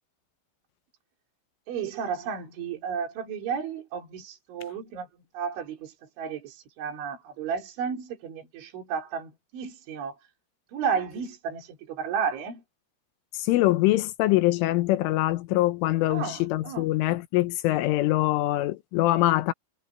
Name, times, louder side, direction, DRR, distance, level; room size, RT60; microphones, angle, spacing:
voice 1, 1.7-5.1 5.3-10.2 10.7-12.6 16.1-16.9, right 6 dB, 65° right, 6.4 m, -33 dB
voice 2, 13.4-19.5, left 16 dB, 80° left, 3.5 m, -24 dB
omnidirectional pair, 5.8 m